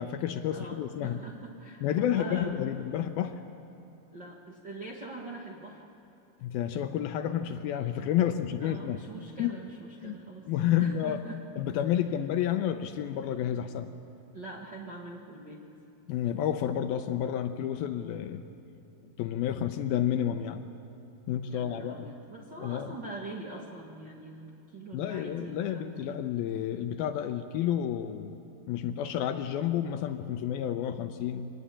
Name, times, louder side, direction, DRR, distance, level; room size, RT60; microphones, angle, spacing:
voice 1, 0.0-1.2 1.8-3.4 6.4-9.0 9.4-9.5 10.0-10.2 10.5-11.2 11.6-13.9 16.1-18.4 19.2-20.7 21.3-22.1 22.6-22.9 24.9-28.4 28.7-31.5, left 10 dB, 80° left, 8 dB, 2.4 m, -30 dB
voice 2, 0.5-2.6 4.1-5.9 8.6-10.5 10.8-11.4 14.3-15.7 21.5-26.2, right 2 dB, 55° right, -2 dB, 1.2 m, -43 dB
24.5 x 20.0 x 8.8 m, 2.9 s
omnidirectional pair, 4.8 m